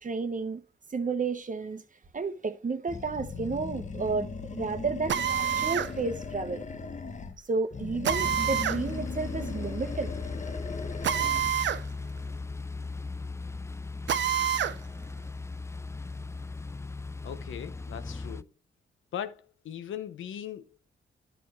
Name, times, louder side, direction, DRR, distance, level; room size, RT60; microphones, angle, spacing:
voice 1, 0.0-0.6 0.9-1.8 2.1-6.6 7.5-10.1, right 4 dB, 40° right, 1.2 m, -32 dB
Animal, 2.9-7.4 7.7-11.6, left 4 dB, 40° left, 1.0 m, -39 dB
Drill, 5.1-5.9 8.0-8.8 11.0-11.8 12.2-12.3 14.1-14.8, right 9 dB, 65° right, 0.7 m, -27 dB
sound 1, 8.1-18.4, left 3 dB, 15° left, 0.4 m, -38 dB
voice 2, 17.2-18.5 19.1-21.0, left 9 dB, 80° left, 0.8 m, -39 dB
10.5 x 6.3 x 3.1 m
supercardioid pair, 55°, 20 cm